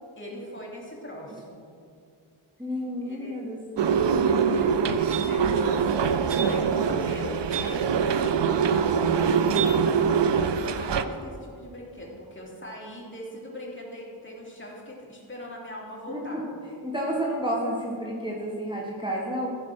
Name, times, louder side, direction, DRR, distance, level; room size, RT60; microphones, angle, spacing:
voice 1, 0.2-1.6 3.0-3.4 4.5-7.8 8.4-16.4, equal, 25° left, -3 dB, 2.7 m, -40 dB
voice 2, 2.6-4.1 16.1-16.4 16.8-19.6, equal, 10° right, -4 dB, 1.4 m, -31 dB
sound 1, 3.8-11.0, right 6 dB, 60° right, 0.6 m, -23 dB
14.5 x 5.3 x 6.1 m, 2.4 s
wide cardioid pair, 65°, 49 cm